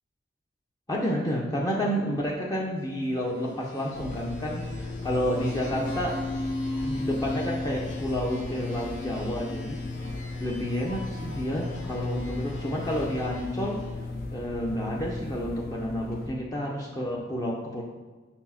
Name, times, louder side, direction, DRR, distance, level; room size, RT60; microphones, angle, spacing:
voice 1, 0.9-4.6 5.0-6.2 6.8-9.8 10.4-13.8 14.3-17.8, equal, 20° left, -3 dB, 0.8 m, -30 dB
sound 1, 3.2-14.1, left 1 dB, 70° left, 1.5 m, -38 dB
sound 2, 3.9-16.3, left 2 dB, 55° left, 0.8 m, -36 dB
4.9 x 4.4 x 5.8 m, 1.3 s
head